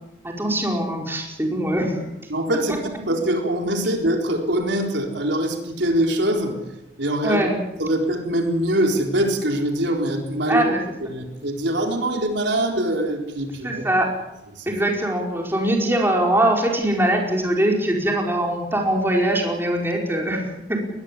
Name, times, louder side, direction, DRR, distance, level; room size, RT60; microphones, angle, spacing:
voice 1, 0.2-2.1 7.2-7.6 10.5-10.8 13.6-14.1 14.7-20.8, right 1 dB, 15° right, 0 dB, 4.9 m, -22 dB
voice 2, 2.3-6.6 7.0-7.4 7.8-10.7 11.1-13.8 14.6-14.7, right 1 dB, 75° right, 2 dB, 4.1 m, -23 dB
21.5 x 20.0 x 8.5 m, 0.93 s
head